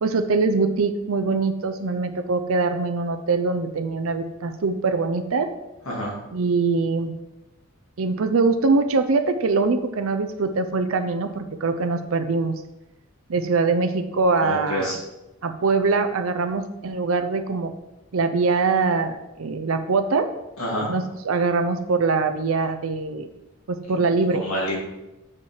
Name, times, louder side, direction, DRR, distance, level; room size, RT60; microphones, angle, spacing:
voice 1, 0.0-5.5 6.3-7.1 8.0-12.5 13.3-14.9 15.4-17.7 18.1-20.3 20.9-23.3 23.7-24.4, right 4 dB, 75° right, 7 dB, 0.5 m, -23 dB
voice 2, 14.4-15.0 20.6-20.9 23.9-24.0 24.4-24.8, equal, 80° left, -4 dB, 2.4 m, -27 dB
6.6 x 5.7 x 4.8 m, 0.97 s
head